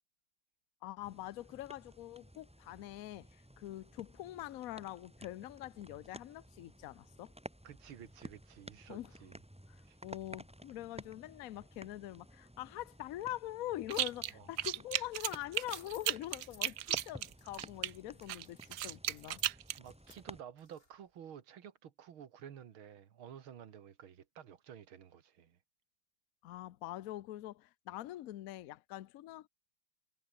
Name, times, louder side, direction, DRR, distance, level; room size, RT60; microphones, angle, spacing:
voice 1, 0.8-7.3 8.9-9.1 9.7-19.4 26.4-29.5, left 14 dB, 75° left, 0.8 m, -44 dB
sound 1, 1.0-20.4, equal, 5° right, 2.2 m, -54 dB
voice 2, 7.6-9.4 9.9-10.0 14.3-14.5 19.8-25.6, right 9 dB, 85° right, 2.4 m, -52 dB
sound 2, 13.9-14.3 14.6-17.9 18.3-19.8, right 13 dB, 65° right, 1.1 m, -35 dB
sound 3, 15.3-21.1, left 2 dB, 25° left, 5.4 m, -60 dB
omnidirectional pair, 2.2 m